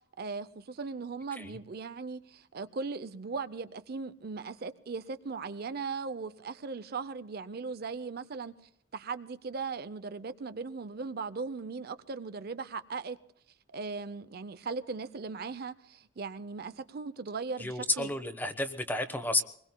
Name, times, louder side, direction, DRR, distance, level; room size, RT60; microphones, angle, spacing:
voice 1, 0.2-8.6 8.9-13.2 13.7-18.1, right 4 dB, 55° right, 0.6 m, -38 dB
voice 2, 17.6-19.4, left 2 dB, 10° left, 1.1 m, -31 dB
25.0 x 21.0 x 2.2 m
head